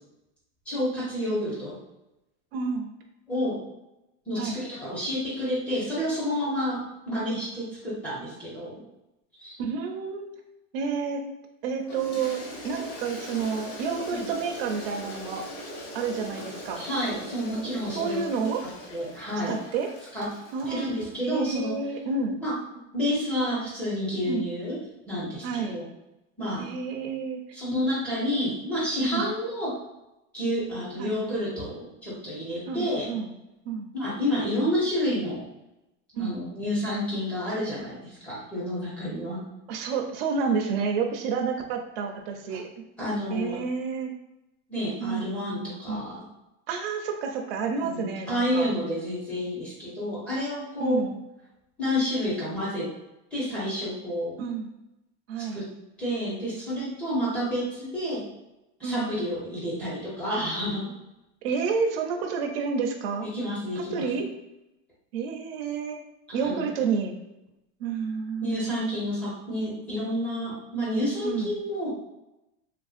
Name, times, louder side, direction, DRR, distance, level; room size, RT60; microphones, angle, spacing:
voice 1, 0.7-1.8 3.3-3.6 4.3-8.8 9.4-9.6 14.1-14.3 16.8-18.2 18.9-19.5 20.1-20.3 20.7-21.8 22.4-22.5 22.9-24.8 25.1-25.8 26.4-26.7 27.5-29.7 30.3-33.1 33.9-35.4 36.1-39.4 43.0-43.6 44.7-46.2 47.7-51.0 51.8-52.9 53.3-54.3 55.4-55.7 56.0-58.2 58.8-60.9 63.2-64.1 66.4-66.7 68.4-71.9, equal, 5° left, -9 dB, 0.5 m, -29 dB
voice 2, 2.5-2.9 4.4-4.6 9.6-10.3 10.7-11.2 11.6-15.4 15.9-16.8 17.9-18.6 19.5-19.9 20.5-22.4 24.3-24.5 25.4-25.8 26.6-27.4 29.0-29.3 31.0-31.2 32.7-33.3 33.7-33.9 36.2-36.4 39.7-42.6 43.3-44.1 45.0-45.3 45.9-46.1 46.7-48.7 50.8-51.2 54.4-54.7 55.3-55.6 58.8-59.1 61.4-63.3 63.8-64.3 65.1-66.0 66.3-67.2 67.8-68.6 71.2-71.5, right 5 dB, 50° right, 2 dB, 0.5 m, -30 dB
Toilet flush, 11.9-21.2, left 1 dB, 60° left, 0.9 m, -41 dB
3.3 x 2.5 x 2.4 m, 0.93 s
supercardioid pair, 180°, 37 cm